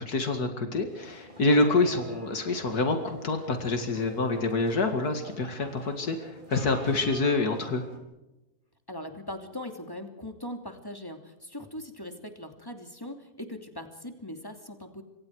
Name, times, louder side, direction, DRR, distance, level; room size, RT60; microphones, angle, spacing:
voice 1, 0.0-7.8, left 2 dB, 85° left, 5 dB, 2.6 m, -27 dB
sound 1, 0.9-8.0, right 1 dB, 30° right, 4.8 m, -46 dB
voice 2, 8.9-15.0, left 1 dB, 15° left, 5 dB, 2.9 m, -40 dB
27.0 x 25.0 x 4.8 m, 0.96 s
omnidirectional pair, 1.6 m